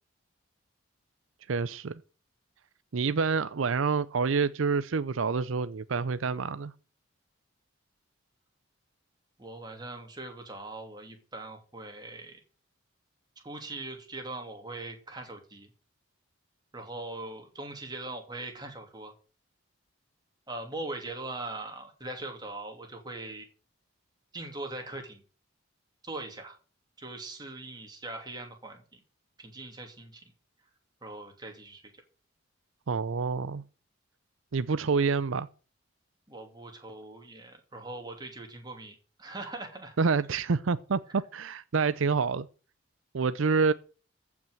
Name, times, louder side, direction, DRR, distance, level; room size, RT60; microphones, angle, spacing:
voice 1, 1.5-2.0 2.9-6.7 32.9-33.6 34.5-35.5 40.0-42.5 43.1-43.7, right 5 dB, 70° right, 0.5 m, -27 dB
voice 2, 9.4-12.4 13.4-15.7 16.7-19.1 20.5-23.5 24.3-25.2 26.0-26.6 27.0-29.0 29.4-30.3 31.0-32.0 36.3-40.0, right 2 dB, 20° right, 2.8 m, -41 dB
14.5 x 6.0 x 7.7 m
head